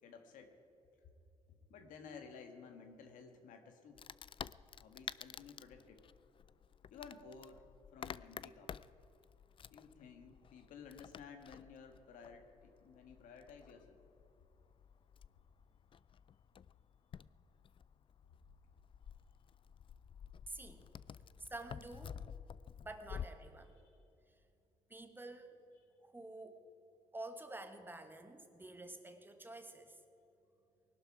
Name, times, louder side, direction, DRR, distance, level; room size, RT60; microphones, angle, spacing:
voice 1, 0.0-0.5 1.5-4.0 4.8-6.1 6.9-8.8 9.7-14.0, left 5 dB, 85° left, 6 dB, 1.6 m, -55 dB
Wood, 4.0-23.3, left 8 dB, 40° left, 0.4 m, -52 dB
voice 2, 20.5-20.9 21.4-22.3 22.8-23.7 24.3-24.4 24.9-25.6 26.0-26.6 27.1-30.0, right 2 dB, 15° right, 7 dB, 1.5 m, -49 dB
20.0 x 12.0 x 4.9 m, 3.0 s
cardioid pair, 85°, 13 cm